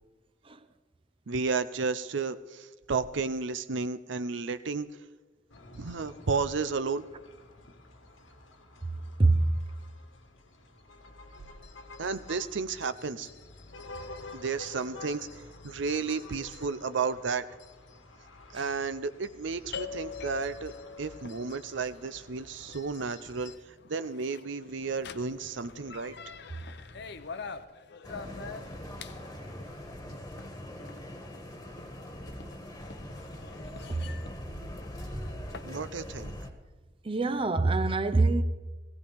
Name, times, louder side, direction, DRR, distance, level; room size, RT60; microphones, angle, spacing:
voice 1, 1.3-4.9 5.7-7.1 12.0-13.3 14.3-17.5 18.5-26.2 35.6-36.3, right 4 dB, 70° right, 0.6 m, -32 dB
sound 1, 5.5-23.6, left 3 dB, 85° left, 1.6 m, -50 dB
voice 2, 9.2-9.6 18.5-18.6 33.9-34.1 37.0-38.4, right 3 dB, 30° right, 0.6 m, -25 dB
sound 2, 19.7-35.7, left 5 dB, 60° left, 0.7 m, -45 dB
sound 3, 28.0-36.5, equal, 20° left, 1.5 m, -42 dB
18.0 x 16.5 x 3.5 m
head